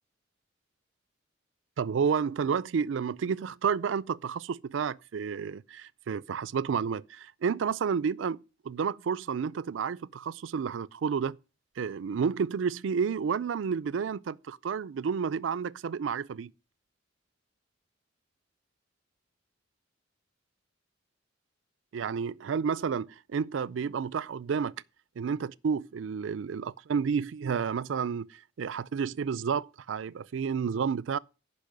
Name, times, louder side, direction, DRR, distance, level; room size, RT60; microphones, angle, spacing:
voice 1, 1.8-8.4 8.6-11.4 11.8-16.5 21.9-24.7 25.2-31.2, right 6 dB, 80° right, 0.4 m, -30 dB
10.5 x 5.4 x 6.4 m
head